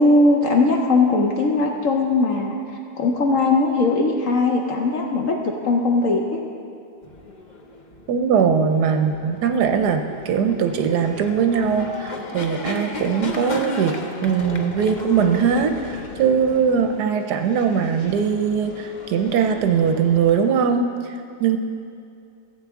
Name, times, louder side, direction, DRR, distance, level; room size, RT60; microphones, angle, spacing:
voice 1, 0.0-2.6 3.0-6.4, left 3 dB, 60° left, 1 dB, 0.9 m, -19 dB
sound 1, 7.0-20.6, left 2 dB, 85° left, 0.4 m, -35 dB
voice 2, 8.1-14.0 14.2-21.1 21.4-21.6, right 7 dB, 70° right, 6 dB, 1.1 m, -20 dB
15.0 x 8.1 x 3.6 m, 2.5 s
omnidirectional pair, 1.9 m